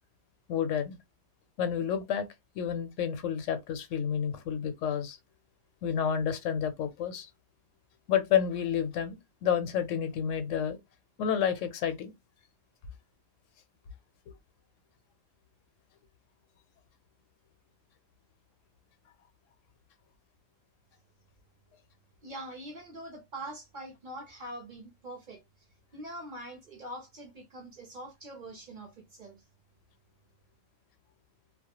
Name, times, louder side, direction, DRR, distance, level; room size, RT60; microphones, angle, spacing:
voice 1, 0.5-1.0 1.6-2.3 2.5-5.2 5.8-7.3 8.1-10.8 11.2-12.1, left 8 dB, 80° left, 1.0 m, -30 dB
voice 2, 22.2-25.4 25.9-29.4, right 1 dB, 45° right, 0.7 m, -43 dB
2.3 x 2.1 x 2.8 m
omnidirectional pair, 1.3 m